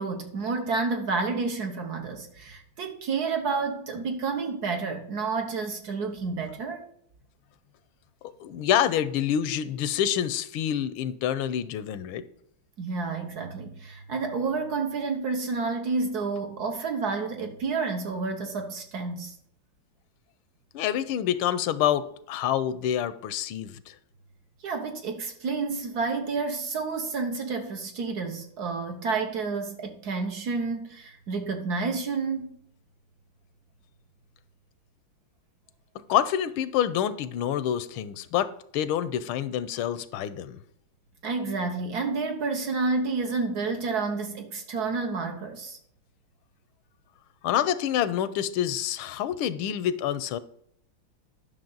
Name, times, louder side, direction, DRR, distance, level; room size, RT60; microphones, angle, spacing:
voice 1, 0.0-6.9 12.8-19.3 24.6-32.5 41.2-45.8, right 4 dB, 60° right, 1.2 m, -30 dB
voice 2, 8.4-12.2 20.7-24.0 36.1-40.6 47.4-50.4, left 10 dB, 80° left, 1.4 m, -27 dB
10.5 x 6.3 x 3.8 m
omnidirectional pair, 2.3 m